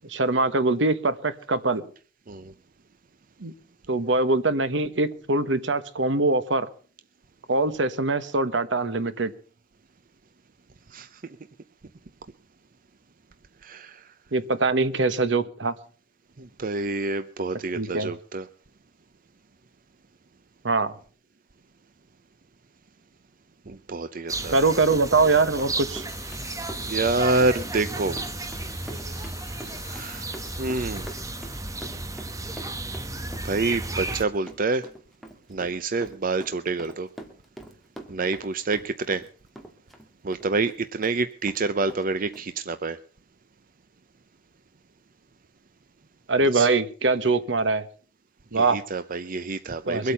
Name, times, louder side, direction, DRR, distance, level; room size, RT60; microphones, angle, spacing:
voice 1, 0.1-1.8 3.4-3.5 3.9-6.7 7.5-9.3 14.3-15.7 17.7-18.1 20.6-20.9 24.5-26.0 46.3-47.8 48.5-48.8 49.9-50.1, right 3 dB, 75° right, 12 dB, 1.2 m, -23 dB
voice 2, 13.6-14.0 16.4-18.5 23.7-24.7 26.9-28.2 29.6-30.3 30.6-31.1 33.4-34.9 35.5-37.1 38.1-39.2 40.2-43.0 46.5-46.7 48.5-50.1, right 3 dB, 50° right, 12 dB, 0.6 m, -27 dB
sound 1, 24.3-34.2, right 2 dB, 20° right, 1.1 m, -33 dB
Run, 24.8-39.3 39.6-41.2 41.5-41.6 41.9-42.0 42.3-42.4, right 1 dB, ahead, 2.0 m, -44 dB
sound 2, 26.1-31.8, left 5 dB, 20° left, 2.4 m, -46 dB
23.5 x 8.4 x 5.6 m, 0.42 s
head